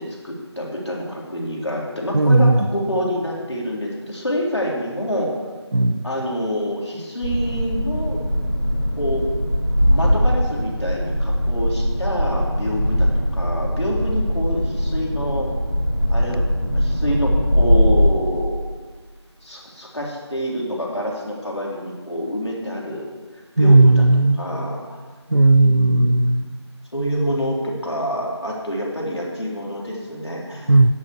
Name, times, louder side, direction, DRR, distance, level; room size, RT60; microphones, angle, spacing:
voice 1, 0.0-5.3 6.0-8.2 9.0-9.3 9.9-15.5 16.1-16.4 16.7-18.6 19.4-23.0 23.3-24.0 24.4-25.0 25.6-26.1 26.9-30.7, equal, 70° left, -3 dB, 3.8 m, -27 dB
voice 2, 2.1-2.6 5.7-6.0 23.6-24.5 25.3-26.5 30.7-30.9, right 2 dB, 55° right, 14 dB, 0.5 m, -14 dB
sound 1, 7.2-18.0, equal, ahead, 3.3 m, -21 dB
10.5 x 8.5 x 6.7 m, 1.4 s
figure-of-eight pair, 180°, 15 cm